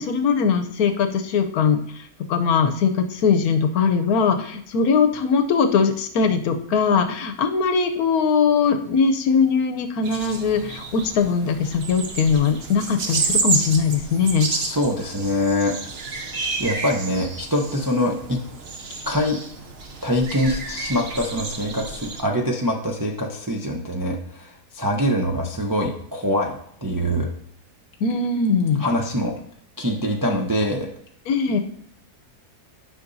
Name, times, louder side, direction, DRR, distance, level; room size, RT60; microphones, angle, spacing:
voice 1, 0.0-1.8 2.3-14.5 28.0-28.8 31.3-31.6, left 5 dB, 75° left, 7 dB, 1.2 m, -20 dB
sound 1, 10.0-22.2, right 4 dB, 50° right, 0.9 m, -30 dB
voice 2, 14.5-15.7 16.3-18.4 19.1-19.4 20.0-27.3 28.8-29.3 29.8-30.9, equal, 25° right, 0 dB, 0.4 m, -24 dB
9.8 x 5.9 x 2.6 m, 0.68 s
omnidirectional pair, 1.7 m